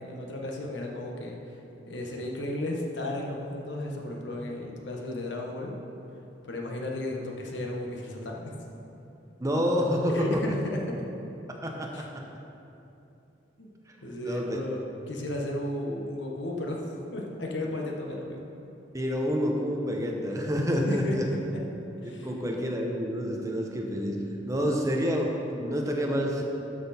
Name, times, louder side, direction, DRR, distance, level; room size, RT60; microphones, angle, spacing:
voice 1, 0.0-1.4 1.9-5.7 6.4-8.5 10.1-11.0 11.9-12.0 13.6-13.7 14.0-18.4 20.9-21.6 22.0-22.3, left 1 dB, 75° left, 0 dB, 1.3 m, -34 dB
voice 2, 9.4-10.4 11.5-12.2 14.3-14.6 18.9-21.2 22.0-24.2 24.5-26.4, equal, 20° right, 0 dB, 0.9 m, -28 dB
12.5 x 6.1 x 4.3 m, 2.9 s
head